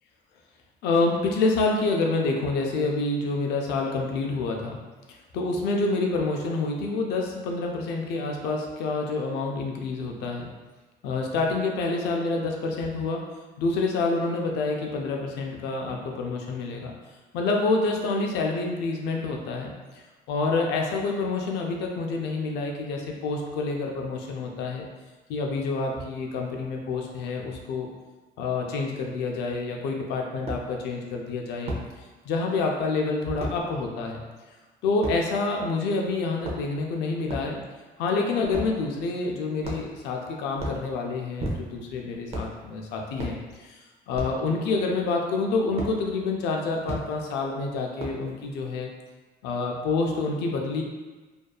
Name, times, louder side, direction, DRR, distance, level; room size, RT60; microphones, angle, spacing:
voice 1, 0.8-4.8 5.3-10.5 11.0-13.2 13.6-16.9 17.3-20.0 20.3-24.9 25.3-27.9 28.4-31.7 32.3-34.2 34.8-37.6 38.0-43.3 43.6-43.8 44.1-48.9 49.4-50.8, left 3 dB, 85° left, 1 dB, 0.5 m, -27 dB
sound 1, 30.5-30.6 31.7-31.9 33.4-33.6 35.0-35.2 36.3-36.8 37.3-37.5 38.5-38.8 39.6-40.0 40.5-40.8 41.4-41.9 42.3-42.5 43.2-43.4 44.1-44.4 45.8-45.9 46.9-47.0 48.0-48.3, right 1 dB, 40° right, 0.5 m, -33 dB
2.6 x 2.3 x 2.2 m, 1.3 s
cardioid pair, 110°, 17 cm